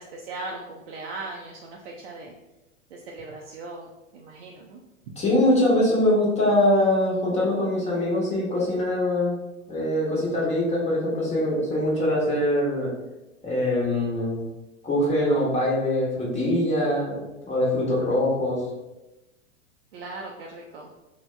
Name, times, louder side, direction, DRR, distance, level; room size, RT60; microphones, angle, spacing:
voice 1, 0.0-2.3 2.9-4.8 19.9-20.9, right 2 dB, 50° right, -2 dB, 0.5 m, -38 dB
voice 2, 5.2-9.4 9.7-12.9 13.4-14.4 14.8-18.6, left 1 dB, 15° left, -5 dB, 1.0 m, -23 dB
3.4 x 2.2 x 3.1 m, 1.0 s
figure-of-eight pair, 95°, 40 cm